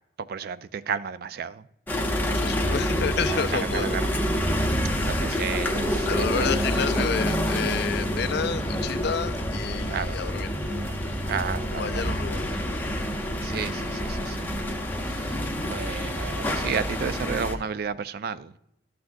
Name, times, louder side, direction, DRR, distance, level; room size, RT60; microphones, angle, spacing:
voice 1, 0.2-1.7 3.3-4.1 5.0-6.5 9.9-10.2 11.3-12.0 13.4-14.5 15.0-18.6, right 6 dB, 50° right, 0.3 m, -33 dB
sound 1, 1.9-17.5, equal, 10° left, 0.7 m, -27 dB
voice 2, 2.3-4.0 5.3-5.5 6.1-10.5 11.8-12.6, left 6 dB, 55° left, 0.4 m, -30 dB
12.5 x 5.9 x 2.6 m
head